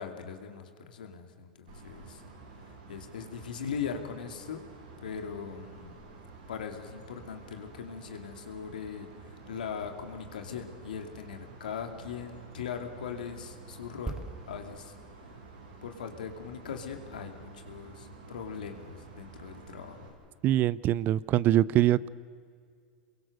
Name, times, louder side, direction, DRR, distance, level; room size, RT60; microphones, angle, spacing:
voice 1, 0.0-2.2 2.9-4.6 5.0-6.0 6.5-9.1 9.5-14.9 15.8-20.1, left 7 dB, 90° left, 4 dB, 2.6 m, -40 dB
sound 1, 1.7-20.1, right 3 dB, 80° right, 8.0 m, -50 dB
sound 2, 14.1-17.7 18.0-18.2, right 3 dB, 15° right, 1.8 m, -44 dB
voice 2, 20.4-22.1, right 13 dB, 45° right, 21 dB, 0.6 m, -24 dB
28.0 x 22.5 x 6.6 m, 2.2 s
hypercardioid pair, 105°, 5 cm